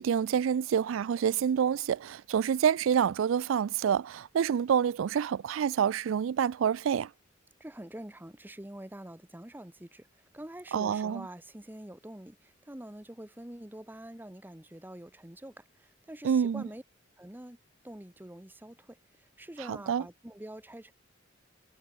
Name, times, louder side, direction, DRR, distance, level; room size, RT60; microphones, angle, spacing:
voice 1, 0.0-7.1 10.7-11.3 16.2-16.7 19.7-20.0, right 8 dB, 90° right, 0.4 m, -27 dB
voice 2, 7.6-10.1 10.3-16.8 17.2-17.6 17.8-19.0 19.4-20.9, right 1 dB, 10° right, 1.0 m, -45 dB
head